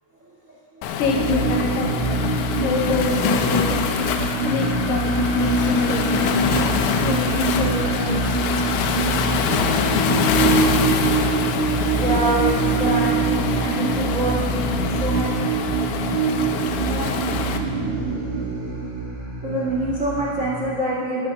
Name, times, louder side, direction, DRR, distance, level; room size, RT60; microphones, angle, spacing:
Waves surf, 0.8-17.6, left 8 dB, 85° left, 3.1 m, -25 dB
voice 1, 1.0-2.2 2.6-9.8, left 4 dB, 65° left, 1 dB, 2.3 m, -28 dB
sound 1, 1.0-20.7, right 4 dB, 80° right, 5.7 m, -24 dB
voice 2, 11.9-15.3 16.9-17.1 19.4-21.3, right 1 dB, 35° right, -7 dB, 1.2 m, -25 dB
16.0 x 9.2 x 5.6 m, 2.2 s
omnidirectional pair, 5.2 m